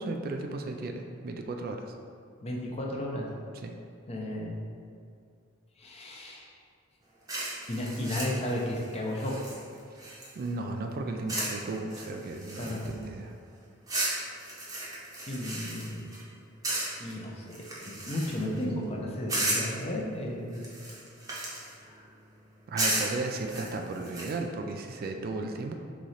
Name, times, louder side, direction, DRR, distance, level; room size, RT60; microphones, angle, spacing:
voice 1, 0.0-1.9 3.5-3.7 10.3-13.3 22.7-25.7, right 2 dB, 45° right, 4 dB, 0.3 m, -35 dB
voice 2, 2.4-3.3 4.1-4.6 5.8-6.5 7.7-9.4 12.6-12.9 15.3-16.1 17.0-17.6 17.9-20.6 21.8-22.1, left 1 dB, 30° left, -1 dB, 0.6 m, -34 dB
sound 1, 7.3-10.5 11.3-11.6 11.9-13.0 13.9-16.2 16.6-17.1 17.5-18.6 19.3-19.8 20.5-21.7 22.8-24.3, right 1 dB, 20° right, 0.8 m, -34 dB
3.7 x 3.1 x 4.1 m, 2.3 s
head